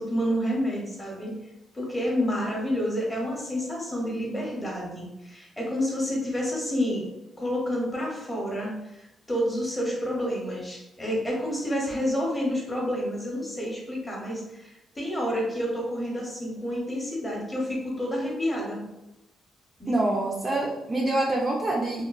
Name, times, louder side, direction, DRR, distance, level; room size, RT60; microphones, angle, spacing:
voice 1, 0.0-1.3 1.7-7.1 7.4-18.8 19.8-20.0, equal, 15° left, -3 dB, 0.7 m, -29 dB
voice 2, 19.9-22.1, right 2 dB, 20° right, -2 dB, 0.3 m, -26 dB
3.1 x 2.2 x 2.3 m, 0.92 s
cardioid pair, 165°, 0 cm